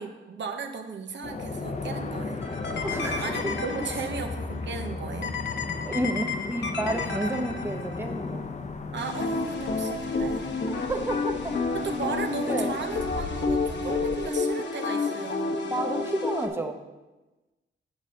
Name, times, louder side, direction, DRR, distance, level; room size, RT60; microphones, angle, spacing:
voice 1, 0.0-2.4 3.2-5.3 8.9-10.5 11.7-15.5, right 5 dB, 65° right, 5 dB, 0.8 m, -35 dB
sound 1, 1.2-14.3, left 3 dB, 35° left, 0.7 m, -36 dB
sound 2, 2.4-4.4 5.2-8.0 9.0-16.5, left 4 dB, 60° left, 1.0 m, -30 dB
voice 2, 2.8-3.5 5.9-8.5 10.8-11.6 12.5-12.7 15.7-16.8, right 1 dB, 10° right, 4 dB, 0.8 m, -30 dB
8.9 x 4.1 x 6.2 m, 1.1 s
cardioid pair, 90°, 21 cm